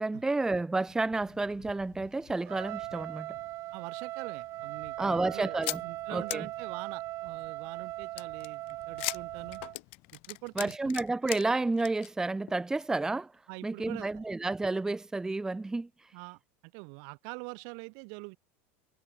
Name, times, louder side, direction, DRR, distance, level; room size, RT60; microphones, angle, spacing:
voice 1, 0.0-3.4 5.0-5.8 6.1-6.5 10.6-13.3 13.6-15.9, right 3 dB, 10° right, 0.8 m, -30 dB
Thunder, 0.9-10.8, left 22 dB, 60° left, 3.4 m, -59 dB
Trumpet, 2.4-9.8, right 17 dB, 50° right, 0.5 m, -39 dB
voice 2, 3.7-5.6 5.8-9.6 10.1-10.9 13.5-14.2 16.1-18.4, right 40 dB or more, 65° right, 2.8 m, -44 dB
sound 1, 5.6-5.8 6.3-6.4 8.2-11.4 11.8-12.1 12.5-12.6 12.8-12.9, left 23 dB, 75° left, 0.7 m, -37 dB
supercardioid pair, 115°, 6 cm